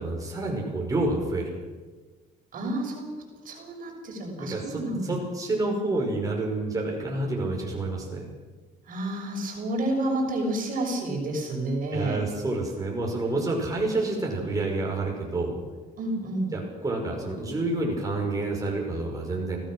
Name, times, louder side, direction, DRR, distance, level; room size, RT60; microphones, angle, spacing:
voice 1, 0.0-1.5 4.4-8.3 11.9-15.6 16.5-19.6, right 2 dB, 20° right, -1 dB, 5.9 m, -28 dB
voice 2, 2.5-5.1 8.9-12.2 16.0-16.5, right 1 dB, 55° right, 1 dB, 6.1 m, -30 dB
25.0 x 17.0 x 6.4 m, 1.3 s
cardioid pair, 110°, 17 cm